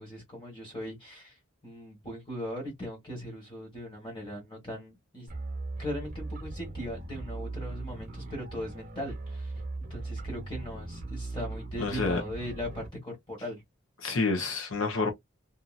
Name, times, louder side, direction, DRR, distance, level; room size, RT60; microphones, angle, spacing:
voice 1, 0.0-5.3 5.8-9.5 9.9-13.6, equal, 20° left, 1.4 m, -39 dB
sound 1, 5.3-12.9, right 2 dB, 35° right, 0.9 m, -39 dB
voice 2, 11.8-12.2 14.0-15.1, left 3 dB, 70° left, 0.9 m, -28 dB
2.7 x 2.6 x 2.5 m
head